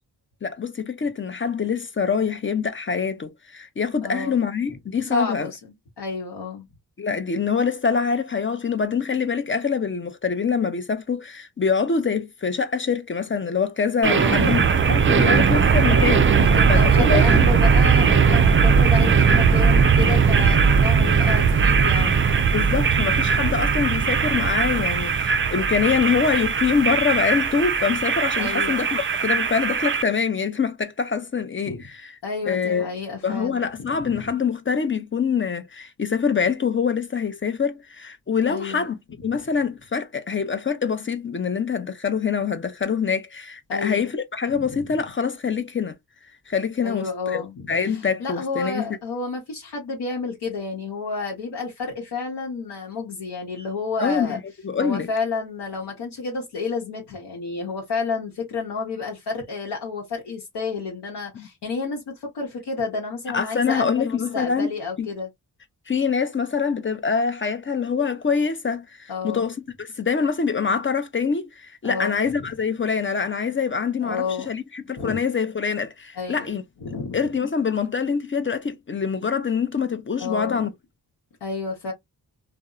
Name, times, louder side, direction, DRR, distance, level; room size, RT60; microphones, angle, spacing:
voice 1, 0.4-5.5 7.0-16.3 16.7-17.5 22.5-32.1 32.5-32.9 33.2-46.0 46.5-49.0 54.0-54.3 54.6-55.1 61.4-61.5 63.3-64.7 65.0-65.1 65.9-76.6 77.1-80.7, left 6 dB, 30° left, 0.5 m, -25 dB
voice 2, 4.0-4.4 4.7-4.8 5.1-5.6 6.0-6.7 14.0-14.6 15.9-22.2 28.4-28.8 31.7-31.9 32.2-34.3 38.5-38.9 43.7-44.1 44.5-44.8 46.8-54.4 54.8-65.3 69.1-69.5 71.8-72.2 74.0-74.5 75.0-75.2 76.2-76.5 76.8-77.2 80.2-80.7 81.4-81.9, left 4 dB, 75° left, 0.9 m, -30 dB
sound 1, 14.0-30.0, right 6 dB, 30° right, 0.4 m, -19 dB
2.7 x 2.0 x 2.3 m
cardioid pair, 70°, 41 cm